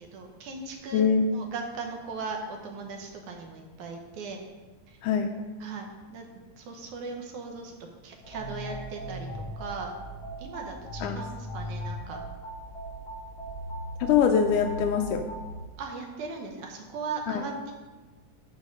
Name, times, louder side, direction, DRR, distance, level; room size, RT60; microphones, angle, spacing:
voice 1, 0.0-1.0 1.3-4.4 4.9-5.0 5.6-7.8 8.0-10.0 10.4-12.2 15.8-17.7, right 4 dB, 70° right, 2 dB, 2.2 m, -38 dB
voice 2, 0.9-1.3 5.0-5.3 11.0-11.2 14.0-15.3 17.3-17.4, left 7 dB, 80° left, 5 dB, 1.9 m, -23 dB
sound 1, 8.2-15.5, right 1 dB, 35° left, 3.7 m, -38 dB
13.0 x 4.6 x 5.3 m, 1.3 s
omnidirectional pair, 3.9 m